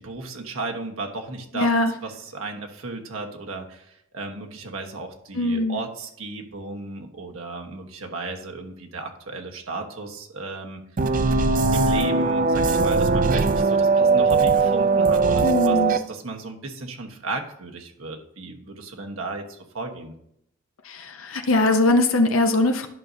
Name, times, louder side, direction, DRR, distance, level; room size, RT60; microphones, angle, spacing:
voice 1, 0.0-1.7 2.0-11.1 11.7-20.1, right 3 dB, 90° right, 2 dB, 1.3 m, -34 dB
voice 2, 1.5-1.9 5.4-5.8 15.4-15.9 20.9-22.9, left 2 dB, 80° left, 5 dB, 0.7 m, -21 dB
sound 1, 11.0-16.0, right 4 dB, 40° right, 0.4 m, -20 dB
11.0 x 6.3 x 2.7 m, 0.74 s
head